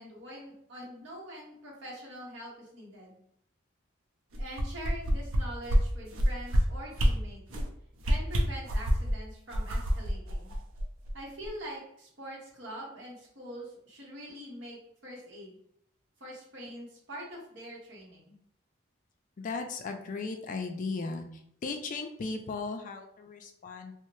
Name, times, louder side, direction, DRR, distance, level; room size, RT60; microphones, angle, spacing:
voice 1, 0.0-3.2 4.4-7.4 8.0-10.5 11.1-15.6 16.2-18.4, equal, 60° right, -4 dB, 0.9 m, -44 dB
sound 1, 4.3-5.4 5.7-5.8 6.1-6.6 6.9-7.1 7.5-7.7 8.0-9.1 9.5-11.1 11.4-11.5, equal, 85° right, 0.5 m, -26 dB
voice 2, 19.4-21.3 21.6-23.9, left 4 dB, 40° left, 5 dB, 0.3 m, -36 dB
2.6 x 2.0 x 3.0 m, 0.73 s
head